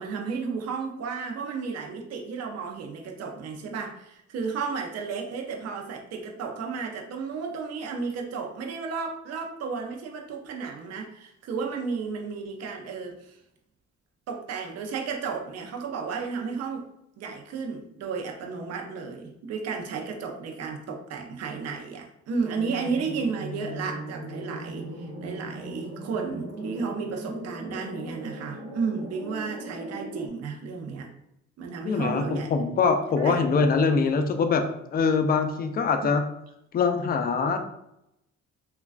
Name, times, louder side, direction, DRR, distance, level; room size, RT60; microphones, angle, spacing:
voice 1, 0.0-13.4 14.3-16.9 17.2-31.1 31.6-32.5 33.2-33.4 36.0-36.1, right 5 dB, 55° right, 2 dB, 0.5 m, -33 dB
sound 1, 22.4-30.3, right 1 dB, 90° right, 0.8 m, -38 dB
voice 2, 31.9-34.6 34.9-36.2 36.7-37.6, left 5 dB, 30° left, 6 dB, 0.4 m, -23 dB
3.1 x 2.3 x 2.4 m, 0.80 s
cardioid pair, 90°, 30 cm